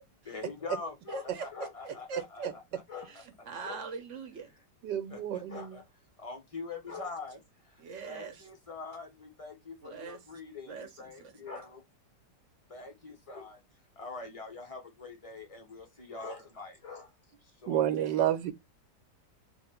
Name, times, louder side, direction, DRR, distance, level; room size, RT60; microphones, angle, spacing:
voice 1, 0.3-2.6 2.9-3.1 3.6-3.8 5.1-5.8 6.2-7.4 8.1-9.1 9.4-11.8 12.7-13.6 14.0-17.0 17.6-17.9, left 4 dB, 50° left, 0.4 m, -43 dB
voice 2, 1.1-2.5 3.0-4.6 6.9-7.0 7.8-8.5 9.8-10.3 10.7-11.5 16.1-16.2 17.7-18.3, right 4 dB, 55° right, 1.0 m, -43 dB
voice 3, 4.8-5.8 17.7-18.5, right 11 dB, 90° right, 1.3 m, -29 dB
3.1 x 2.5 x 4.2 m
omnidirectional pair, 1.8 m